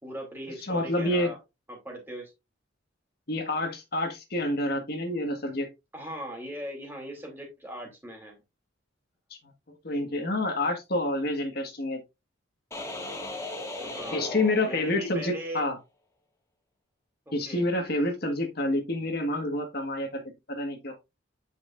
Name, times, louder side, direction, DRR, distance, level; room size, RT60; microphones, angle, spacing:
voice 1, 0.0-1.4 1.7-2.3 5.9-8.4 13.7-14.3 14.6-15.7 17.3-17.7, right 1 dB, 10° right, 0 dB, 3.2 m, -39 dB
voice 2, 0.6-1.3 3.3-5.7 9.8-12.0 14.1-15.8 17.3-20.2 20.5-20.9, left 1 dB, 55° left, 3 dB, 1.6 m, -28 dB
sound 1, 12.7-15.3, left 2 dB, 15° left, 1.9 m, -37 dB
9.1 x 5.6 x 2.5 m, 0.24 s
head